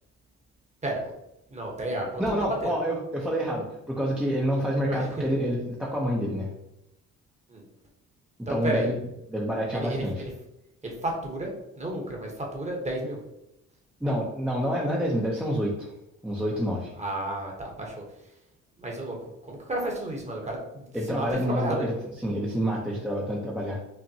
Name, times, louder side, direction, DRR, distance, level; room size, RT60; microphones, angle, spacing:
voice 1, 1.5-2.7 4.8-5.2 7.5-7.6 8.5-8.9 9.7-10.3 10.8-13.2 17.0-18.0 18.8-21.9, right 1 dB, 20° right, 0 dB, 1.1 m, -32 dB
voice 2, 2.2-6.5 8.5-9.0 9.3-10.1 14.0-15.9 16.2-16.9 20.9-21.9 22.2-23.8, equal, 5° right, -4 dB, 0.6 m, -28 dB
5.5 x 2.1 x 2.7 m, 0.86 s
cardioid pair, 90°, 30 cm